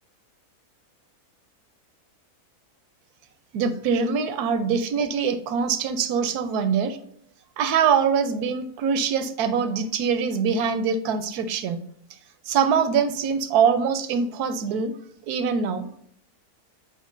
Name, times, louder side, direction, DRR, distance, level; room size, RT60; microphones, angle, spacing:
voice 1, 3.5-7.0 7.6-11.8 12.5-14.9 15.3-15.9, right 6 dB, 80° right, 11 dB, 1.1 m, -23 dB
8.1 x 4.5 x 2.5 m, 0.64 s
omnidirectional pair, 1.6 m